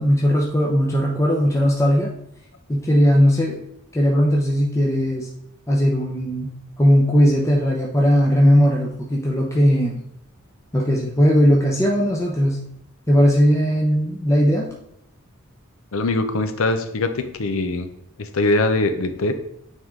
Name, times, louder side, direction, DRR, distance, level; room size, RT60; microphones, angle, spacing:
voice 1, 0.0-2.1 2.7-3.6 3.9-5.3 5.7-6.5 6.8-10.0 10.7-12.6 13.1-14.7, equal, 15° left, -2 dB, 0.7 m, -18 dB
voice 2, 15.9-17.9 18.2-19.3, left 2 dB, 75° left, 9 dB, 0.7 m, -22 dB
9.0 x 3.6 x 3.7 m, 0.76 s
head